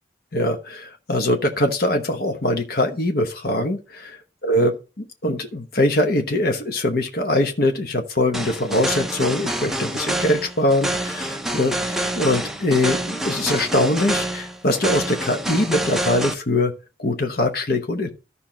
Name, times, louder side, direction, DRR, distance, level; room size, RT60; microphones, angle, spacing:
voice 1, 0.3-4.1 4.4-16.7 17.0-18.1, left 1 dB, 55° left, 1.1 m, -22 dB
sound 1, 8.3-16.3, right 1 dB, ahead, 0.7 m, -27 dB
14.0 x 5.7 x 2.9 m
head